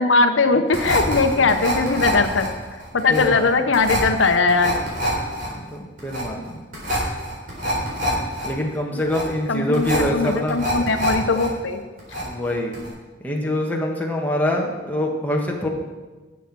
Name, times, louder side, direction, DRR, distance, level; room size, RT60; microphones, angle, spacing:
voice 1, 0.0-2.5 2.9-4.8 8.9-9.0 9.5-11.8, left 3 dB, 80° left, 8 dB, 0.8 m, -20 dB
sound 1, 0.7-11.5 11.8-12.5 12.7-12.9, equal, 45° right, 3.8 m, -26 dB
voice 2, 1.2-1.5 3.1-3.5 5.5-6.6 8.4-10.6 12.2-12.8 13.2-15.7, left 1 dB, 10° left, -1 dB, 1.4 m, -25 dB
11.5 x 7.2 x 6.1 m, 1.3 s
head